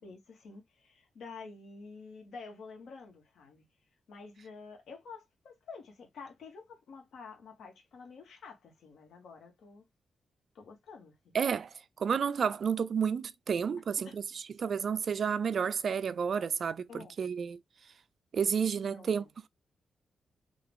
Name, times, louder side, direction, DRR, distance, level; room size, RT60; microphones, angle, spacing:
voice 1, 0.0-3.6 4.1-9.8 10.5-11.1 14.0-14.2 16.9-17.1 18.8-19.3, left 4 dB, 80° left, 2.0 m, -49 dB
voice 2, 11.3-11.7 12.0-17.6 18.3-19.5, right 6 dB, 55° right, 0.4 m, -31 dB
3.9 x 3.2 x 3.5 m
wide cardioid pair, 130°, 0 cm